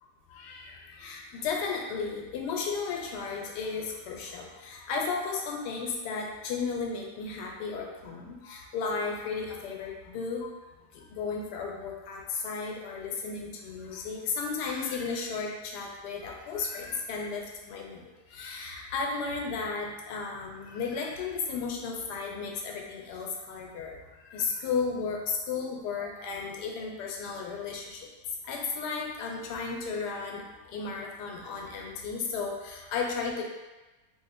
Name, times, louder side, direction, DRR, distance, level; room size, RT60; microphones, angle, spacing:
voice 1, 0.3-10.5 10.9-24.0 24.2-28.1 28.4-33.4, left 5 dB, 75° left, 0 dB, 1.2 m, -34 dB
3.1 x 2.0 x 4.1 m, 1.2 s
omnidirectional pair, 1.8 m